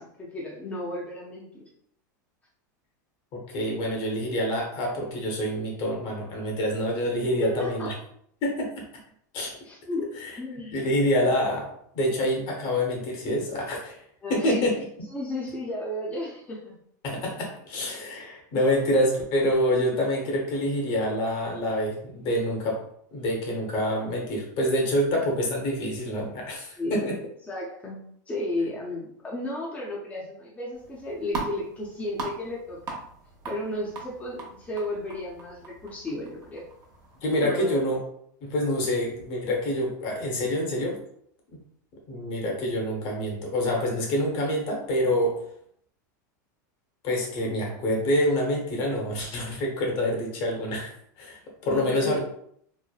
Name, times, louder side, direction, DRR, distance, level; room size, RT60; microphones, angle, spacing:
voice 1, 0.0-1.6 7.4-7.9 9.6-10.8 14.2-14.7 15.1-16.7 26.8-27.2 27.4-28.0 28.3-32.8 33.4-36.6 37.4-37.8 51.7-52.2, left 1 dB, 15° left, -4 dB, 0.6 m, -33 dB
voice 2, 3.3-7.9 8.4-8.8 9.3-9.6 10.2-10.4 10.7-11.7 11.9-14.0 14.3-14.8 17.0-22.8 23.1-27.2 37.2-38.0 38.4-41.0 41.5-41.6 42.1-45.4 47.0-52.2, equal, 50° left, 0 dB, 1.0 m, -26 dB
sound 1, 30.7-37.5, right 3 dB, 40° right, 0.8 m, -40 dB
3.2 x 2.1 x 2.3 m, 0.68 s
hypercardioid pair, 110°, 10 cm